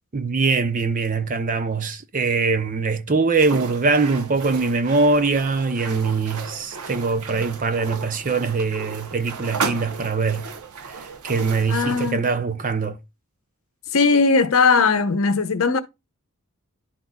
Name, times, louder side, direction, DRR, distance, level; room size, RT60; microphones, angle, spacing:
voice 1, 0.1-10.5 10.9-13.0, right 4 dB, 35° right, 0.6 m, -22 dB
sound 1, 3.3-12.2, right 5 dB, 85° right, 0.8 m, -34 dB
voice 2, 11.7-12.3 13.9-15.8, left 4 dB, 65° left, 0.8 m, -19 dB
11.5 x 3.9 x 2.3 m
head